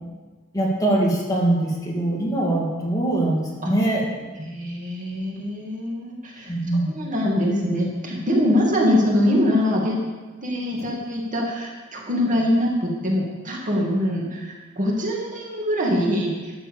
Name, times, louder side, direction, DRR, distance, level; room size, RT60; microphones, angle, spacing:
voice 1, 0.5-4.2 6.5-6.9, right 1 dB, 20° left, -3 dB, 2.6 m, -22 dB
voice 2, 4.4-6.5 6.9-10.0 10.4-16.5, left 1 dB, 40° right, -2 dB, 2.4 m, -23 dB
12.5 x 7.8 x 6.9 m, 1.3 s
head